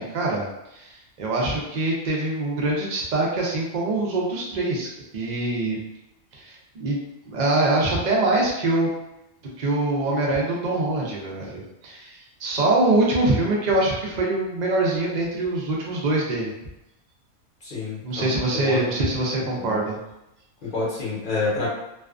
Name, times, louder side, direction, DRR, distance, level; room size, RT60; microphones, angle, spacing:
voice 1, 0.0-4.9 5.1-5.8 6.3-7.0 7.3-8.9 9.6-16.5 18.0-20.0, right 2 dB, 65° right, -3 dB, 0.4 m, -24 dB
voice 2, 17.6-18.3 18.5-18.9 19.5-19.8 20.6-21.7, left 3 dB, 40° left, -7 dB, 0.9 m, -28 dB
2.5 x 2.3 x 2.4 m, 0.89 s
omnidirectional pair, 1.5 m